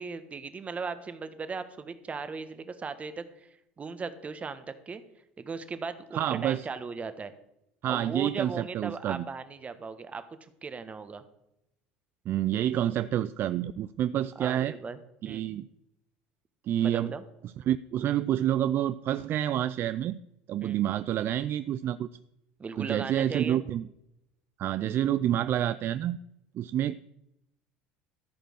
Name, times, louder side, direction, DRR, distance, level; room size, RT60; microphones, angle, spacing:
voice 1, 0.0-5.0 5.4-7.3 7.9-11.2 14.3-15.0 15.2-15.6 16.8-17.2 20.6-20.8 22.6-23.6, right 4 dB, 30° right, 11 dB, 1.3 m, -38 dB
voice 2, 6.1-6.7 7.8-9.3 12.3-14.7 15.2-15.7 16.6-17.1 17.7-20.2 20.5-22.1 22.8-23.9 24.6-26.2 26.5-27.0, right 11 dB, 50° right, 14 dB, 0.4 m, -28 dB
14.0 x 5.2 x 6.4 m, 0.82 s
hypercardioid pair, 80°, 5 cm